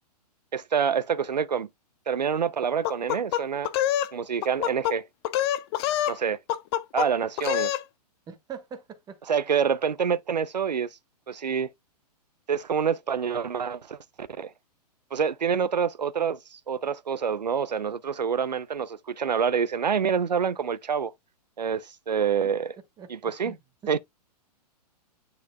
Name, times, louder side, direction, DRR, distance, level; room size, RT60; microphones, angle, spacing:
voice 1, 0.5-1.7 2.1-3.7 4.1-5.0 6.1-6.4 6.9-7.7 9.3-10.9 11.3-11.7 12.5-14.5 15.1-21.1 21.6-22.7 23.1-23.6 23.9-24.0, right 7 dB, 85° right, 0.6 m, -27 dB
sound 1, 2.8-4.1 4.4-4.9 5.2-6.2 6.5-7.1 7.4-7.8, left 12 dB, 40° left, 0.6 m, -26 dB
voice 2, 8.3-9.2 23.0-23.6, right 7 dB, 20° right, 1.1 m, -42 dB
9.6 x 4.4 x 2.3 m
figure-of-eight pair, 115°, 21 cm